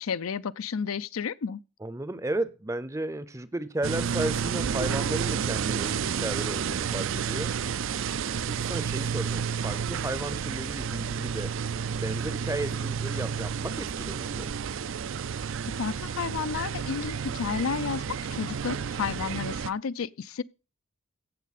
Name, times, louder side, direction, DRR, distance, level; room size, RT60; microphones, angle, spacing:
voice 1, 0.0-1.6 15.8-20.4, left 6 dB, 80° left, 0.5 m, -31 dB
voice 2, 1.8-7.6 8.5-11.5 11.9-14.5, right 1 dB, 15° right, 0.6 m, -34 dB
sound 1, 3.8-19.7, right 7 dB, 65° right, 0.4 m, -31 dB
15.5 x 6.4 x 4.2 m
head